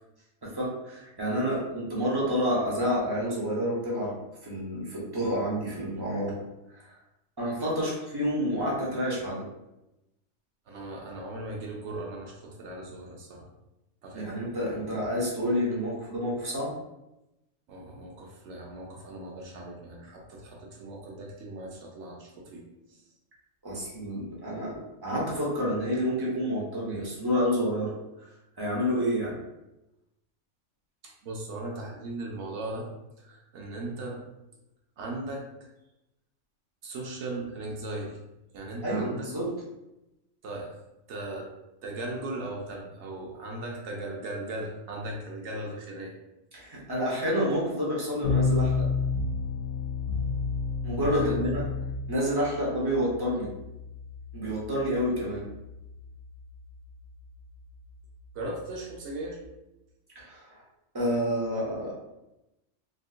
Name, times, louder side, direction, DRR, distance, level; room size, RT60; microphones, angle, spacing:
voice 1, 0.4-4.1 4.4-6.4 6.7-6.8 7.4-9.4 14.1-16.7 23.6-27.9 28.6-29.3 38.8-39.5 46.5-48.9 50.8-51.6 52.1-53.5 54.3-55.4 60.1-60.4 60.9-61.9, equal, 25° right, -5 dB, 0.5 m, -29 dB
voice 2, 10.7-13.5 14.0-14.3 17.7-23.1 31.0-32.9 33.2-34.2 35.0-35.4 36.8-38.2 38.5-39.3 40.4-40.8 41.1-41.5 41.8-46.1 51.1-51.5 58.3-59.4, right 2 dB, 65° right, 0 dB, 0.8 m, -38 dB
sound 1, 48.2-59.4, left 5 dB, 70° left, 1.2 m, -32 dB
3.6 x 2.4 x 2.4 m, 0.93 s
omnidirectional pair, 1.6 m